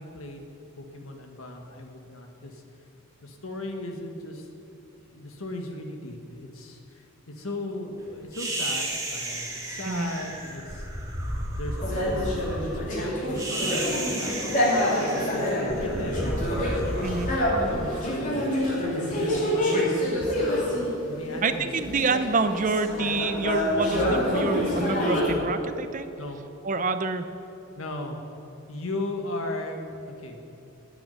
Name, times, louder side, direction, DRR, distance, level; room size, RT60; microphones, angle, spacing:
voice 1, 0.0-2.6 3.2-4.5 5.0-10.9 11.5-14.4 15.1-16.3 16.6-20.5 21.0-21.9 26.2-26.4 27.8-28.2 28.7-30.4, left 1 dB, 85° left, 3 dB, 1.6 m, -37 dB
sound 1, 8.3-18.7, right 1 dB, 15° right, 2.2 m, -33 dB
sound 2, 11.8-20.9 21.2-25.3, equal, 40° left, 3.0 m, -27 dB
voice 2, 21.4-26.1 26.6-27.3, right 4 dB, 40° right, 10 dB, 0.7 m, -27 dB
9.7 x 8.9 x 9.1 m, 2.9 s
head